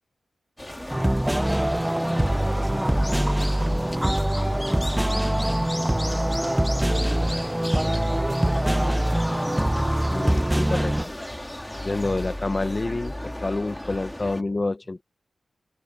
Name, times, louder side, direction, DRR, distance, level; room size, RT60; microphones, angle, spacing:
sound 1, 0.6-14.4, left 1 dB, 10° left, 2.3 m, -35 dB
sound 2, 0.9-11.0, right 1 dB, 10° right, 0.9 m, -23 dB
voice 1, 1.5-3.2 6.8-7.5 7.9-9.0 12.0-12.3 14.2-14.6, right 3 dB, 35° right, 5.4 m, -39 dB
voice 2, 10.1-11.1 11.8-15.0, left 2 dB, 35° left, 1.0 m, -28 dB
cardioid pair, 65°, 0 cm